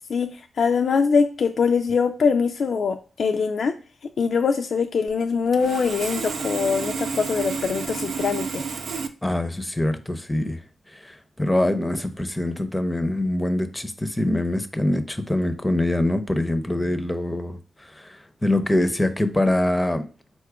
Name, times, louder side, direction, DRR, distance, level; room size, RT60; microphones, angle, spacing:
voice 1, 0.1-3.7 4.2-8.6, left 5 dB, 70° left, 5 dB, 0.3 m, -23 dB
Sawing, 5.1-5.2 5.5-9.1, right 5 dB, 75° right, 0.4 m, -30 dB
voice 2, 9.2-10.6 10.9-17.6 17.9-20.1, left 1 dB, 15° left, 9 dB, 0.6 m, -24 dB
4.2 x 2.3 x 4.7 m, 0.36 s
cardioid pair, 65°, 0 cm